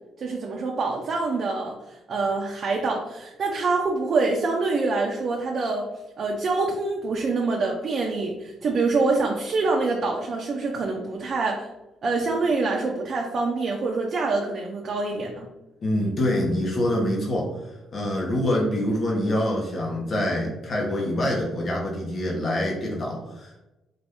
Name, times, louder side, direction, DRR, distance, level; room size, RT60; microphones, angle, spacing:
voice 1, 0.2-5.9 6.2-11.7 12.0-15.5, right 3 dB, 50° right, -1 dB, 0.6 m, -25 dB
voice 2, 15.8-17.5 17.9-23.6, left 1 dB, 50° left, -2 dB, 1.0 m, -25 dB
4.1 x 2.6 x 3.5 m, 0.99 s
cardioid pair, 90°, 0 cm